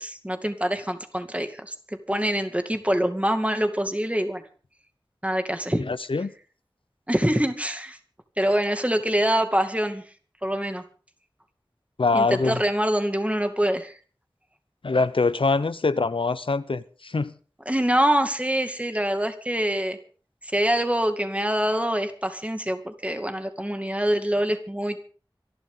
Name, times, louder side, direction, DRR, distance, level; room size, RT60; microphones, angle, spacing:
voice 1, 0.0-1.7 2.1-4.4 5.2-5.8 7.1-8.0 8.4-10.0 10.4-10.8 12.1-13.9 17.7-20.0 20.4-25.0, right 1 dB, 15° right, 2.4 m, -25 dB
voice 2, 5.7-6.3 12.0-12.6 14.8-17.3, left 3 dB, 90° left, 0.7 m, -24 dB
26.0 x 11.5 x 3.9 m
wide cardioid pair, 50°, 9 cm